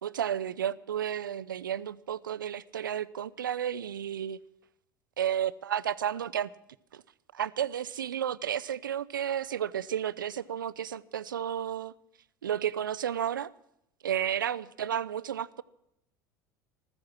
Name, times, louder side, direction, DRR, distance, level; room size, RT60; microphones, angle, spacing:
voice 1, 0.0-4.4 5.2-6.5 6.9-7.0 7.3-11.9 12.4-13.5 14.0-15.6, right 9 dB, 75° right, 0.5 m, -32 dB
15.0 x 14.0 x 6.2 m
figure-of-eight pair, 75°, 11 cm